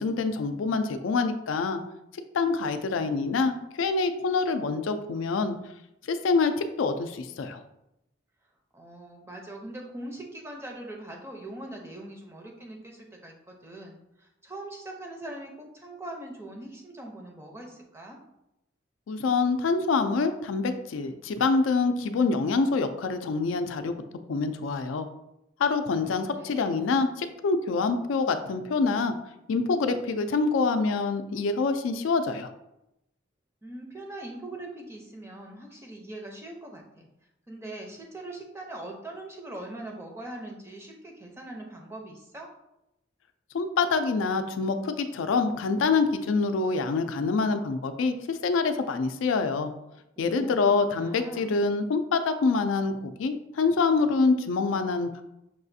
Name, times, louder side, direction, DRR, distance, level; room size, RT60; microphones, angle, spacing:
voice 1, 0.0-1.8 2.3-5.6 6.1-7.6 19.1-24.0 24.3-25.1 25.6-29.1 29.5-32.5 43.5-49.7 50.2-55.1, left 4 dB, 90° left, 8 dB, 0.4 m, -26 dB
voice 2, 8.7-18.2 25.9-26.9 33.6-37.1 37.5-42.5 50.2-51.6, right 1 dB, 15° right, 0 dB, 0.5 m, -42 dB
5.9 x 2.4 x 2.6 m, 0.86 s
head